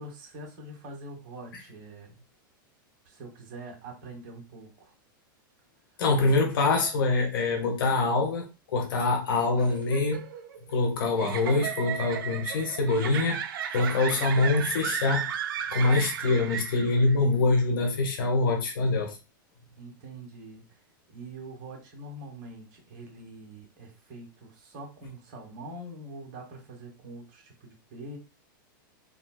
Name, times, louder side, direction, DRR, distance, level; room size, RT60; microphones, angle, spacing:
voice 1, 0.0-2.1 3.0-4.9 19.8-20.6 21.1-28.2, right 1 dB, 50° right, 1 dB, 1.4 m, -44 dB
voice 2, 6.0-8.4 8.7-10.2 10.7-13.4 13.7-15.3 15.7-19.1, left 3 dB, 80° left, 2 dB, 1.0 m, -24 dB
sound 1, 9.5-17.2, right 8 dB, 80° right, 0.4 m, -35 dB
3.7 x 2.3 x 2.3 m, 0.29 s
hypercardioid pair, 130°, 11 cm